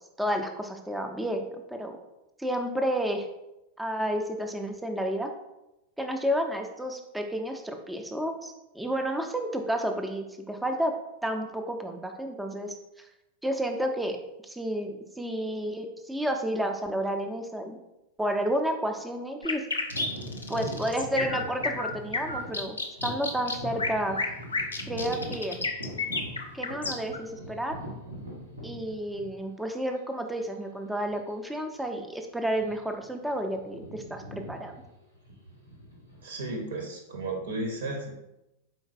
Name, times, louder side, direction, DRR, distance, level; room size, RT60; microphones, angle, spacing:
voice 1, 0.2-2.0 2.4-3.3 3.8-5.3 6.0-10.9 11.2-13.1 13.4-14.2 14.4-17.8 18.2-19.7 20.5-22.8 23.0-24.2 24.9-25.6 26.5-27.8 28.6-34.7, equal, 5° right, 4 dB, 0.4 m, -31 dB
sound 1, 19.4-27.2, left 3 dB, 75° left, 0.4 m, -31 dB
sound 2, 19.9-29.7 30.3-30.4 31.1-31.3 31.6-31.8 32.5-33.0 33.3-36.7, equal, 85° right, 1.5 m, -41 dB
voice 2, 36.2-38.1, right 2 dB, 65° right, 2 dB, 0.8 m, -34 dB
4.3 x 3.8 x 2.5 m, 0.91 s
figure-of-eight pair, 90°, 0 cm